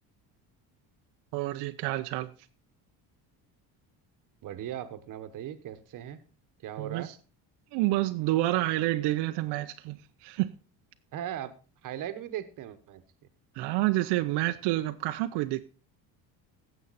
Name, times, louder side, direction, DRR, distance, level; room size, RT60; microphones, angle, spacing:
voice 1, 1.3-2.3 6.8-7.1 7.7-10.5 13.6-15.6, right 17 dB, 85° right, 0.7 m, -28 dB
voice 2, 4.4-6.2 6.6-7.1 11.1-11.5 11.8-13.0, right 11 dB, 50° right, 1.2 m, -38 dB
16.0 x 7.3 x 4.1 m
cardioid pair, 155°, 40 cm